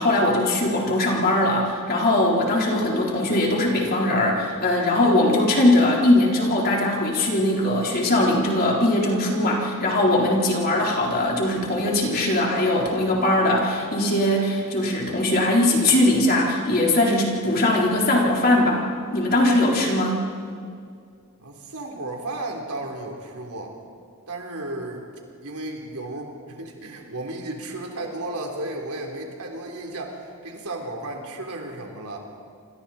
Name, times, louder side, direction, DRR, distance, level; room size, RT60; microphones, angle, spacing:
voice 1, 0.0-18.8 19.1-20.2, left 1 dB, 45° left, -3 dB, 4.1 m, -20 dB
voice 2, 21.4-23.7 24.3-25.1 25.4-32.2, right 2 dB, 80° right, 1 dB, 3.7 m, -34 dB
28.0 x 26.0 x 4.4 m, 2.2 s
head